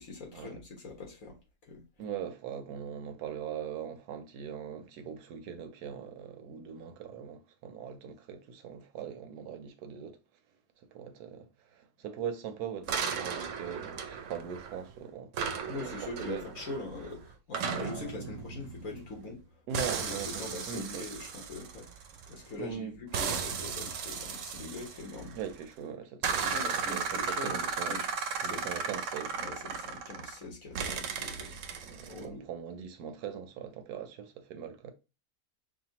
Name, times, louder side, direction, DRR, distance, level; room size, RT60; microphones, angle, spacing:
voice 1, 0.0-1.4 1.7-1.8 15.7-19.4 20.0-21.9 22.3-25.4 26.4-27.6 27.9-28.1 28.4-28.7 29.3-31.6 32.1-32.5, left 3 dB, 60° left, 1.7 m, -42 dB
voice 2, 2.0-10.2 10.9-16.6 19.7-21.0 22.6-22.9 25.3-28.0 28.4-29.4 31.9-34.9, right 7 dB, 85° right, 1.2 m, -41 dB
sound 1, 12.9-14.9 15.3-19.4 19.7-22.5 23.1-25.6 26.2-30.4 30.8-32.2, right 6 dB, 65° right, 0.9 m, -35 dB
5.8 x 2.2 x 2.8 m
omnidirectional pair, 1.6 m